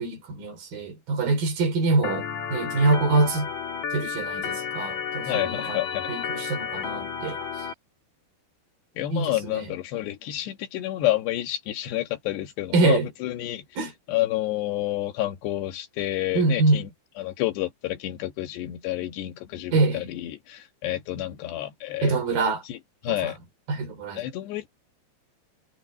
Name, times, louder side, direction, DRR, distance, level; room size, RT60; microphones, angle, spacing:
voice 1, 0.0-3.5 3.9-5.8 6.1-7.7 9.1-9.6 12.7-13.1 13.8-13.9 16.3-16.8 19.7-20.1 22.0-22.6 23.1-23.3 23.7-24.2, right 3 dB, 60° right, 5.0 m, -25 dB
Organ, 2.0-7.7, left 7 dB, 50° left, 3.2 m, -32 dB
voice 2, 5.3-6.1 9.0-13.7 14.1-16.9 17.2-22.8 23.0-23.4 24.2-24.7, left 15 dB, 80° left, 3.7 m, -29 dB
omnidirectional pair, 4.8 m